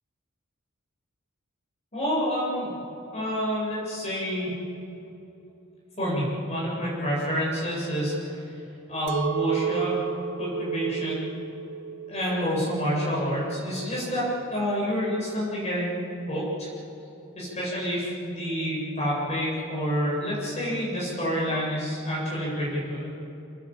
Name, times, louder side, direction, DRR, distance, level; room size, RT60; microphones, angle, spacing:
voice 1, 1.9-2.7 3.1-4.5 6.0-8.5 8.9-9.9 10.4-11.2 12.1-16.0 16.3-16.7 17.3-23.1, equal, 30° left, -6 dB, 7.8 m, -28 dB
Chink clink, 9.1-14.3, right 7 dB, 60° right, 1.2 m, -33 dB
27.5 x 19.5 x 8.7 m, 2.9 s
head